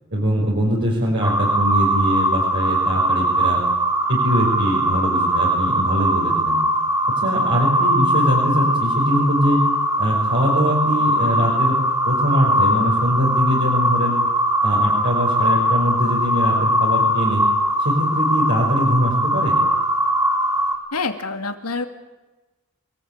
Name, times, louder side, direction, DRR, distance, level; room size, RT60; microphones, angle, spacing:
voice 1, 0.1-3.6 4.1-6.6 7.2-9.6 10.0-11.8 12.0-14.2 14.6-17.4 17.8-19.6, equal, 50° right, -3 dB, 5.5 m, -22 dB
sound 1, 1.2-20.7, equal, 15° right, 4.6 m, -20 dB
voice 2, 20.9-21.9, left 4 dB, 90° left, 7 dB, 2.6 m, -26 dB
28.0 x 19.0 x 8.9 m, 1.1 s
head